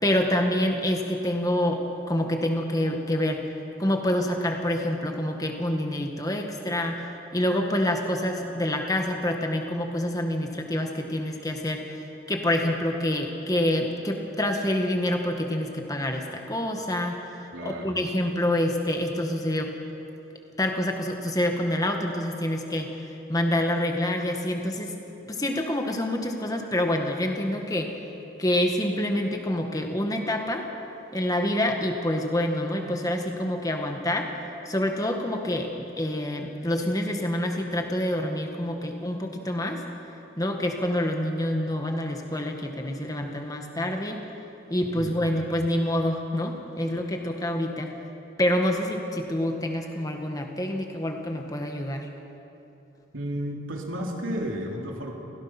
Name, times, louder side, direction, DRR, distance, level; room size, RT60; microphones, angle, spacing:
voice 1, 0.0-3.4 3.8-7.0 7.3-19.7 20.6-22.9 23.3-24.9 25.2-27.9 28.4-30.7 31.1-34.3 34.6-39.8 40.4-44.2 44.7-47.9 48.4-52.1, left 1 dB, 20° left, 3 dB, 1.7 m, -27 dB
voice 2, 17.5-18.0 44.9-45.4 53.1-55.1, equal, 85° right, 0 dB, 3.3 m, -33 dB
29.0 x 17.0 x 6.0 m, 3.0 s
head